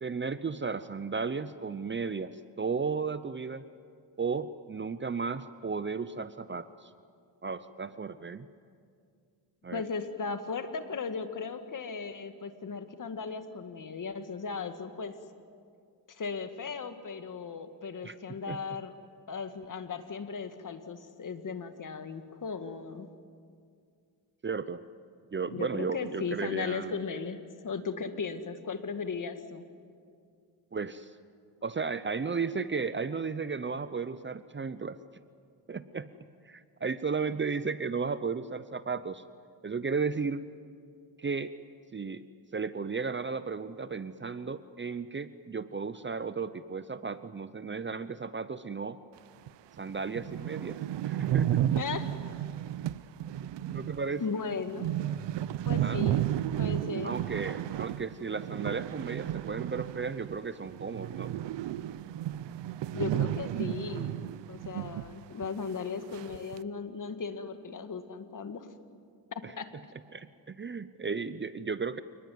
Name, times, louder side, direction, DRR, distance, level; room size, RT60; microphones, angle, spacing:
voice 1, 0.0-3.6 4.2-6.9 7.4-8.5 9.6-9.8 18.0-18.1 18.5-18.6 24.4-24.8 25.3-27.0 30.7-31.1 31.6-35.0 35.7-36.1 36.4-39.2 39.6-40.4 41.2-41.5 41.9-42.3 42.5-49.0 49.8-51.6 53.6-54.4 55.8-56.1 57.0-61.3 69.4-69.5 70.1-72.0, right 5 dB, 25° right, 14 dB, 0.8 m, -34 dB
voice 2, 9.7-15.2 16.1-18.9 19.3-23.1 25.5-29.7 51.8-52.1 54.2-54.9 55.7-56.2 56.6-57.1 62.9-68.7 69.3-69.7, left 5 dB, 45° left, 8 dB, 2.1 m, -37 dB
sound 1, 49.5-49.6 49.9-50.0 50.2-60.4 60.6-65.1 65.4-65.5 66.1-66.6, right 12 dB, 75° right, 0.8 m, -33 dB
27.5 x 20.0 x 9.4 m, 2.3 s
cardioid pair, 85°, 44 cm